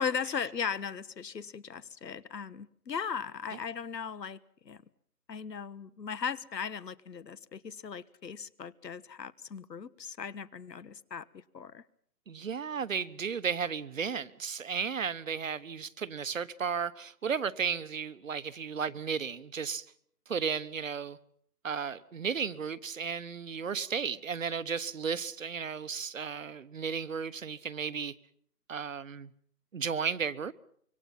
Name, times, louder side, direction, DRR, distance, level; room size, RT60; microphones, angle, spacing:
voice 1, 0.0-4.4 4.6-4.8 5.3-11.8, left 6 dB, 80° left, 1.4 m, -37 dB
voice 2, 12.3-19.9 20.3-21.2 21.6-28.1 28.7-29.3 29.7-30.5, right 6 dB, 50° right, 1.1 m, -34 dB
26.0 x 23.5 x 5.7 m
hypercardioid pair, 170°, 49 cm